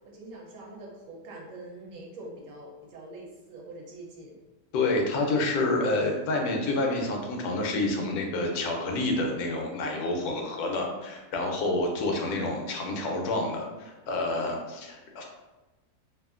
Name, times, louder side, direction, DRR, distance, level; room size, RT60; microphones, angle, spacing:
voice 1, 0.0-4.3, right 2 dB, 70° right, -2 dB, 0.9 m, -44 dB
voice 2, 4.7-15.2, left 2 dB, 90° left, 1 dB, 1.1 m, -28 dB
2.8 x 2.4 x 2.4 m, 1.1 s
omnidirectional pair, 1.6 m